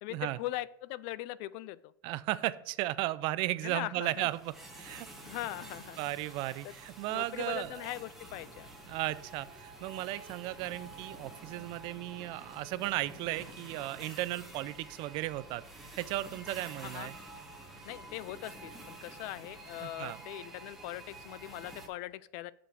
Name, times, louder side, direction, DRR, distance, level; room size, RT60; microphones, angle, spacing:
voice 1, 0.0-1.9 3.6-4.3 5.2-6.0 7.1-8.7 16.8-17.1 17.9-22.5, left 15 dB, 50° left, 19 dB, 0.3 m, -40 dB
voice 2, 2.0-5.1 6.0-7.8 8.9-15.6 16.0-17.2 19.8-20.2, right 17 dB, 45° right, 16 dB, 0.4 m, -35 dB
sound 1, 4.0-21.9, right 2 dB, ahead, 1.3 m, -49 dB
6.8 x 5.0 x 6.1 m, 0.79 s
supercardioid pair, 130°, 12 cm